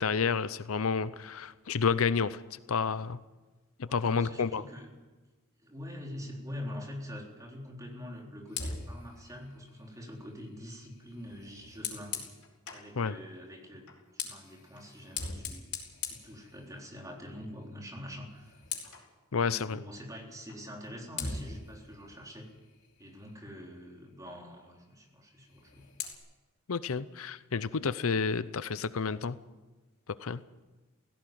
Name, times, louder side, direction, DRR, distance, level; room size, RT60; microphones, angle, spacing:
voice 1, 0.0-3.2 3.8-4.6 13.0-13.2 19.3-19.8 26.7-29.4 30.2-30.4, left 5 dB, 65° left, 15 dB, 0.6 m, -30 dB
voice 2, 3.9-4.9 5.6-12.2 12.7-13.9 14.1-18.6 19.4-22.5 23.0-25.9, left 1 dB, 15° right, 0 dB, 3.9 m, -45 dB
Fire, 8.5-12.9 13.8-17.1 17.4-17.7 18.0-19.1 20.5-20.6 21.1-23.5 25.4-26.1, left 5 dB, 85° left, 4.8 m, -42 dB
17.5 x 16.5 x 9.2 m, 1.2 s
head